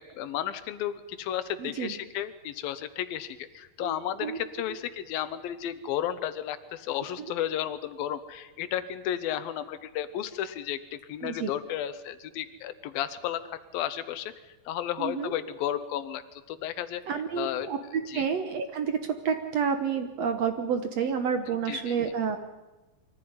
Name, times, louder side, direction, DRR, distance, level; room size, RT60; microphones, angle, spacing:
voice 1, 0.0-14.3 14.7-17.0 17.4-17.7 18.1-18.2 21.7-22.0, left 11 dB, 80° left, 13 dB, 2.8 m, -33 dB
voice 2, 1.6-1.9 3.8-4.4 7.2-7.3 11.2-11.5 15.0-15.3 17.1-22.4, right 6 dB, 60° right, 8 dB, 1.9 m, -29 dB
23.5 x 15.0 x 9.6 m, 1.1 s
omnidirectional pair, 4.1 m